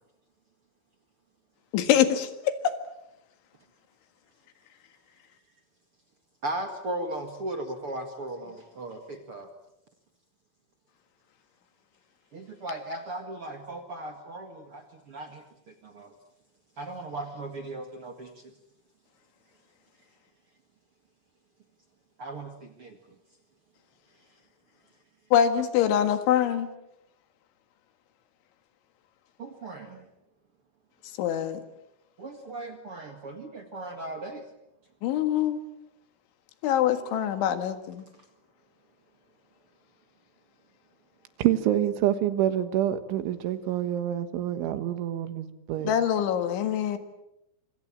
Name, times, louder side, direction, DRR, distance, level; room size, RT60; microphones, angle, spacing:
voice 1, 1.7-2.8 25.3-26.7 31.2-31.6 35.0-35.6 36.6-38.1 45.8-47.0, left 10 dB, 80° left, 4.1 m, -24 dB
voice 2, 6.4-9.5 12.3-16.1 16.8-18.5 22.2-23.0 29.4-30.1 32.2-34.5, right 2 dB, 50° right, 1.7 m, -37 dB
voice 3, 41.4-45.9, right 12 dB, 85° right, 3.9 m, -27 dB
26.5 x 26.0 x 7.4 m
omnidirectional pair, 5.4 m